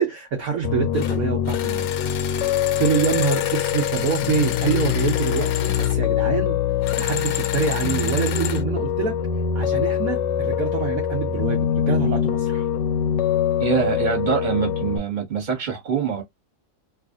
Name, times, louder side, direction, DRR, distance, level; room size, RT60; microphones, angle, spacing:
voice 1, 0.0-1.9 2.8-6.6 7.0-9.2 9.5-12.7, right 6 dB, 60° right, 1.1 m, -25 dB
Piano, 0.6-15.0, left 9 dB, 85° left, 1.2 m, -24 dB
sound 1, 0.9-1.2 1.5-6.0 6.8-8.6, left 10 dB, 70° left, 0.9 m, -31 dB
voice 2, 13.6-16.2, right 6 dB, 30° right, 1.3 m, -24 dB
3.1 x 2.5 x 2.4 m
omnidirectional pair, 1.8 m